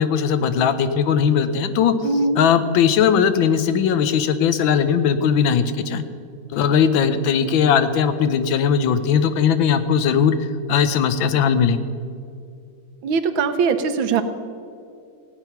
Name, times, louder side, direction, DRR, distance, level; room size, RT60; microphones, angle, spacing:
voice 1, 0.0-2.0 2.4-6.0 6.5-11.8, left 7 dB, 90° left, 11 dB, 1.5 m, -19 dB
voice 2, 2.0-2.4 13.0-14.2, right 5 dB, 90° right, 9 dB, 1.6 m, -20 dB
17.0 x 9.0 x 5.9 m, 2.4 s
omnidirectional pair, 2.1 m